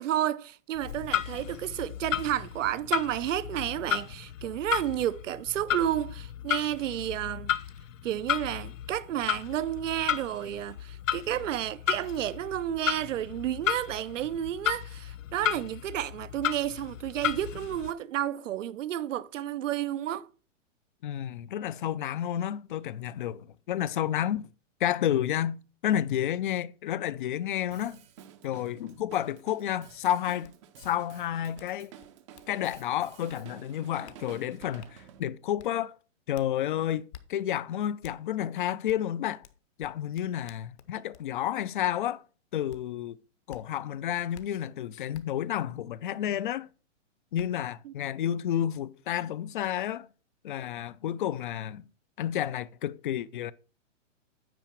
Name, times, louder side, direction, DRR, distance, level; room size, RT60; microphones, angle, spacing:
voice 1, 0.0-7.5 8.0-20.3 47.9-48.0, right 12 dB, 75° right, 0.7 m, -31 dB
Clock, 0.7-17.9, left 10 dB, 85° left, 0.8 m, -34 dB
voice 2, 21.0-24.5 24.8-28.0 28.4-30.5 30.8-31.9 32.5-35.9 36.3-39.4 39.8-42.2 42.5-43.2 43.5-46.7 47.3-50.1 50.4-51.9 52.2-53.5, left 11 dB, 45° left, 0.4 m, -31 dB
Drum kit, 27.7-35.2, right 9 dB, 25° right, 0.5 m, -51 dB
sound 1, 30.4-30.5 30.8-30.9 31.6-31.7 32.0-32.9 33.3-33.4 34.1-34.2 34.8-34.9 35.6-35.7 36.3-36.5 37.1-37.3 38.0-38.2 38.9-39.0 39.4-41.3 41.8-42.0 42.7-42.8 43.5-43.6 44.3-44.5 45.1-45.2 46.7-46.8 47.4-47.5, left 11 dB, 60° left, 1.0 m, -51 dB
9.2 x 4.7 x 4.5 m
hypercardioid pair, 150°, 38 cm